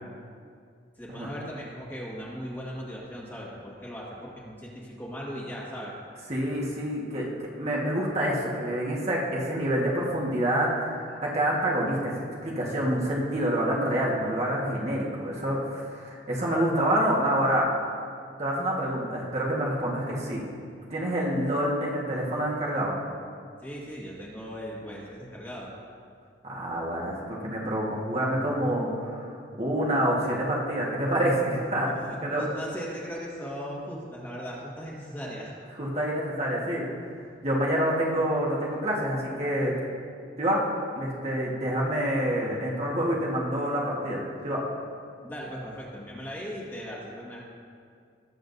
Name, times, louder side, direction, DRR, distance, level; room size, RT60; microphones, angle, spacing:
voice 1, 1.0-5.9 23.6-25.7 32.0-35.5 45.2-47.4, equal, 10° left, -4 dB, 1.7 m, -38 dB
voice 2, 6.3-7.3 7.6-17.7 18.4-20.4 20.9-22.9 26.5-29.3 29.6-31.9 32.2-32.4 35.7-36.9 37.4-39.7 40.4-40.6 41.0-44.6, right 1 dB, 35° right, -4 dB, 1.5 m, -27 dB
19.0 x 7.5 x 2.7 m, 2.2 s
head